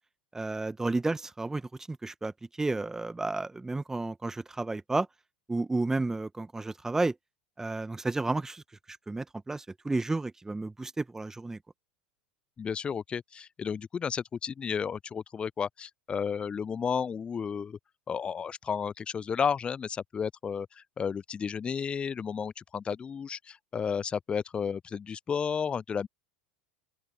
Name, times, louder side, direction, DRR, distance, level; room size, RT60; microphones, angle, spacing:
voice 1, 0.3-1.6 1.9-2.3 2.6-5.1 5.5-7.1 7.6-8.6 8.9-11.6, right 2 dB, 10° right, 1.5 m, -31 dB
voice 2, 12.6-17.8 18.1-26.1, left 6 dB, 20° left, 0.5 m, -32 dB
open air
figure-of-eight pair, 80°, 5 cm